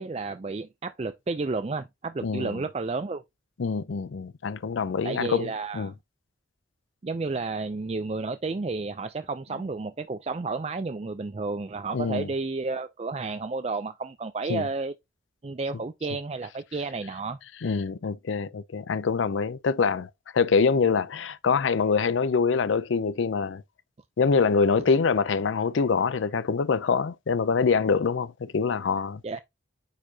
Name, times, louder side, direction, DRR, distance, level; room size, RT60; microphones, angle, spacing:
voice 1, 0.0-3.2 5.0-5.9 7.0-14.9 15.4-17.4 29.2-29.4, right 3 dB, 35° right, 0.4 m, -31 dB
voice 2, 2.2-2.6 3.6-5.9 11.9-12.3 14.5-14.7 17.6-23.6 24.2-29.2, left 5 dB, 80° left, 0.5 m, -25 dB
9.1 x 4.5 x 2.8 m
head